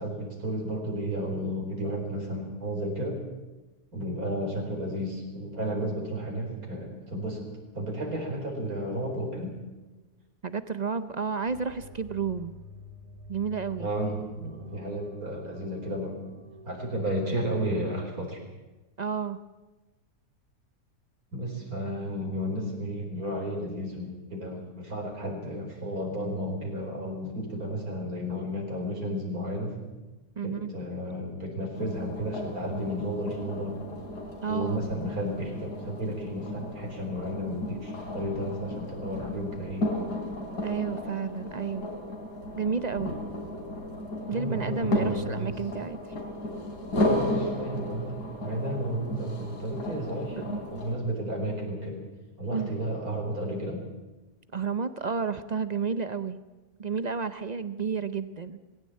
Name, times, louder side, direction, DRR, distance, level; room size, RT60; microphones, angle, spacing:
voice 1, 0.0-3.2 3.9-7.4 7.7-9.5 13.8-16.2 16.6-18.4 21.3-29.7 30.4-33.8 34.4-39.9 44.3-45.6 47.0-52.0 52.4-53.8, equal, 65° right, 1 dB, 5.0 m, -33 dB
voice 2, 10.4-12.5 13.3-13.9 19.0-19.4 30.4-30.7 34.4-34.8 40.6-41.9 42.6-43.1 44.3-46.0 50.3-50.6 52.5-52.7 54.5-56.4 56.8-58.6, right 5 dB, 45° right, 12 dB, 0.5 m, -31 dB
sound 1, 11.5-17.2, left 1 dB, 85° right, 2.7 m, -48 dB
sound 2, 31.7-51.0, left 1 dB, 85° left, 3.9 m, -34 dB
19.5 x 16.5 x 8.6 m, 1.1 s
omnidirectional pair, 1.7 m